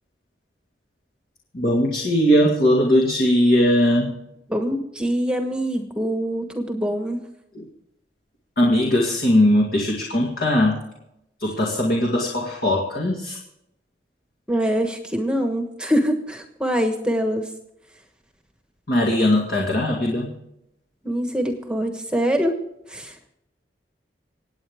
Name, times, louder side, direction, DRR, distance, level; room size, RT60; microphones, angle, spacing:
voice 1, 1.5-4.1 7.5-7.7 8.6-10.8 11.4-13.4 18.9-20.3, left 1 dB, 55° left, -2 dB, 2.2 m, -19 dB
voice 2, 4.5-7.2 14.5-17.5 21.0-22.5 22.9-23.2, equal, 5° right, 5 dB, 1.2 m, -24 dB
26.5 x 8.9 x 3.6 m, 0.82 s
head